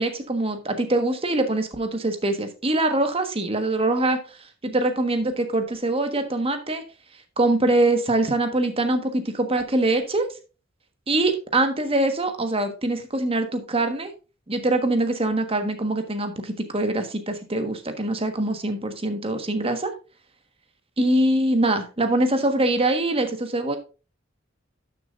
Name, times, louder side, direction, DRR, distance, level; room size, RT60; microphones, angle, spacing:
voice 1, 0.0-4.2 4.6-6.8 7.4-10.3 11.1-14.1 14.5-19.9 21.0-23.8, right 2 dB, 30° right, 7 dB, 1.4 m, -23 dB
12.0 x 7.0 x 2.5 m, 0.32 s
head